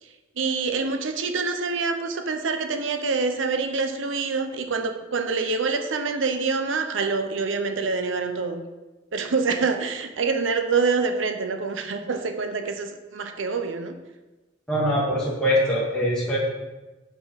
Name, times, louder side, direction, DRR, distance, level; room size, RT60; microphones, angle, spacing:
voice 1, 0.0-8.6 9.1-14.0, right 4 dB, 75° right, 7 dB, 0.7 m, -26 dB
voice 2, 14.7-16.4, equal, 5° left, -6 dB, 1.2 m, -23 dB
5.9 x 4.8 x 5.0 m, 1.1 s
head